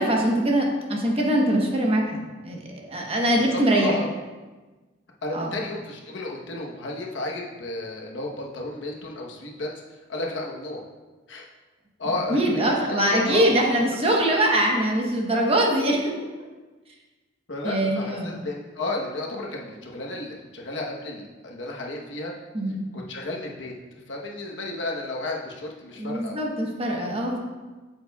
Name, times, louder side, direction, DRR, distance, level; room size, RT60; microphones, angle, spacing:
voice 1, 0.0-3.9 5.3-5.5 12.3-16.1 17.6-18.4 22.5-22.9 26.0-27.4, right 1 dB, 30° right, 0 dB, 1.0 m, -23 dB
voice 2, 3.4-4.1 5.2-10.8 11.3-11.4 12.0-13.5 17.5-22.3 22.9-26.4, left 2 dB, 65° left, -1 dB, 1.0 m, -33 dB
8.3 x 7.5 x 2.3 m, 1.2 s
head